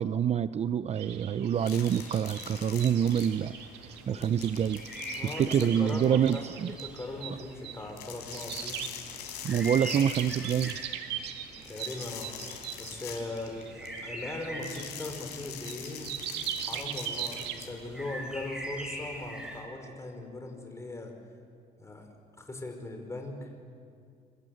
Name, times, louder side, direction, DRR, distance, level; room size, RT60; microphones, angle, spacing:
voice 1, 0.0-4.8 5.2-6.7 9.4-10.8, right 8 dB, 40° right, 14 dB, 0.6 m, -27 dB
sound 1, 1.0-18.1, right 9 dB, 80° right, 2.0 m, -41 dB
sound 2, 1.5-19.6, equal, 5° right, 7.4 m, -44 dB
sound 3, 1.6-3.6 3.9-6.8 7.9-10.9 11.6-14.0 14.6-17.7, left 9 dB, 75° left, 4.9 m, -44 dB
voice 2, 5.2-8.8 9.9-10.0 11.6-12.3 12.8-16.1 16.6-21.1 21.8-23.5, left 2 dB, 15° left, 4 dB, 5.0 m, -39 dB
26.0 x 24.0 x 7.9 m, 2.3 s
cardioid pair, 110°, 17 cm